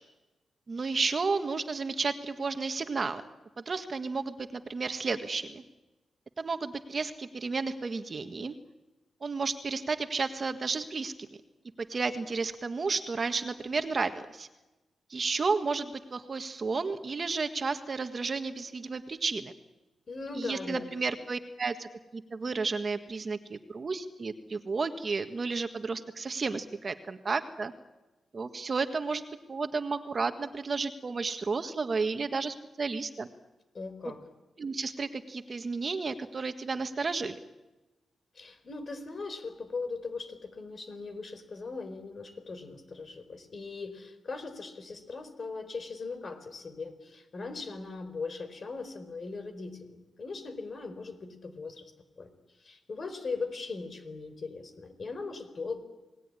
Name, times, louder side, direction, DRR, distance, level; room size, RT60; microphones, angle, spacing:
voice 1, 0.7-3.2 3.6-5.6 6.4-8.5 9.2-11.1 11.8-14.5 15.1-19.5 20.3-27.7 28.3-29.2 29.5-33.3 34.0-34.1 34.6-37.4, right 4 dB, 40° right, 8 dB, 1.5 m, -32 dB
voice 2, 20.1-21.0 33.7-34.2 38.3-52.3 52.6-55.8, left 4 dB, 45° left, 10 dB, 4.3 m, -39 dB
28.5 x 19.5 x 9.8 m, 1.1 s
wide cardioid pair, 115°, 0 cm